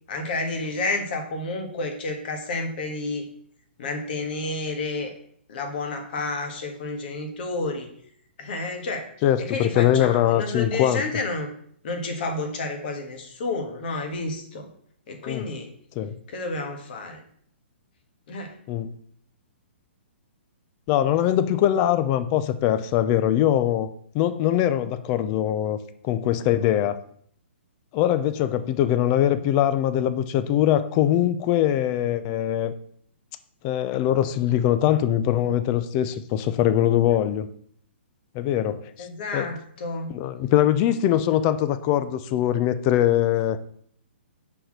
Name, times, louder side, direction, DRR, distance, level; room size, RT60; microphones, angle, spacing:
voice 1, 0.1-3.3 3.8-5.1 5.5-7.9 8.4-9.1 9.4-11.5 11.8-14.7 15.1-15.7 16.3-17.2 18.3-18.5 39.0-40.1, left 3 dB, 50° left, 4 dB, 1.6 m, -30 dB
voice 2, 9.2-11.0 15.2-15.5 16.0-16.1 18.7-18.9 20.9-23.9 24.1-25.8 26.0-27.0 27.9-32.7 33.6-37.5 38.3-39.1 39.3-39.5 40.1-43.6, left 11 dB, 35° left, 13 dB, 0.5 m, -22 dB
5.5 x 4.4 x 6.2 m, 0.63 s
hypercardioid pair, 125°, 6 cm